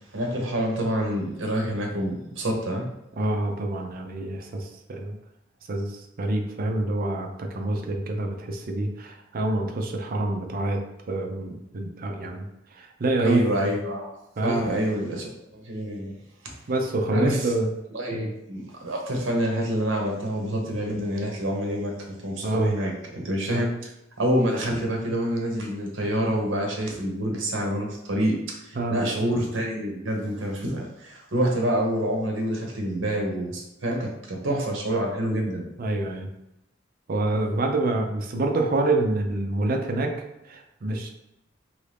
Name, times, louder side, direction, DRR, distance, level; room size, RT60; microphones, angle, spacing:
voice 1, 0.1-2.9 13.2-14.1 14.4-16.1 17.1-17.5 17.9-21.9 22.2-23.9 24.2-35.7, equal, 85° right, 1 dB, 0.8 m, -27 dB
voice 2, 3.2-5.2 5.7-10.8 11.1-12.5 12.7-13.7 14.4-14.6 16.7-17.7 18.1-18.3 22.4-22.8 23.5-23.7 28.8-29.0 35.8-36.3 37.1-40.1 40.4-41.1, right 2 dB, 50° right, 3 dB, 0.5 m, -27 dB
3.1 x 2.5 x 3.3 m, 0.89 s
head